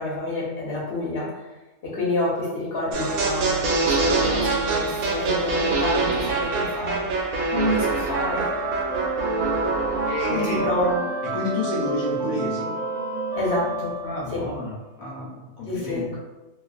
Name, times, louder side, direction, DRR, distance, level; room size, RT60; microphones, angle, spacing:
voice 1, 0.0-1.4 1.8-7.1 7.5-8.5 10.3-11.0 13.4-14.0 14.3-14.5 15.7-16.2, left 1 dB, 55° left, -4 dB, 0.8 m, -28 dB
sound 1, 2.9-11.0, right 3 dB, 80° right, 1.0 m, -25 dB
sound 2, 7.7-14.7, right 2 dB, 40° right, 0.4 m, -30 dB
voice 2, 10.1-10.6 11.3-12.7 14.0-16.0, left 2 dB, 80° left, -4 dB, 1.1 m, -30 dB
2.4 x 2.3 x 2.4 m, 1.1 s
omnidirectional pair, 1.5 m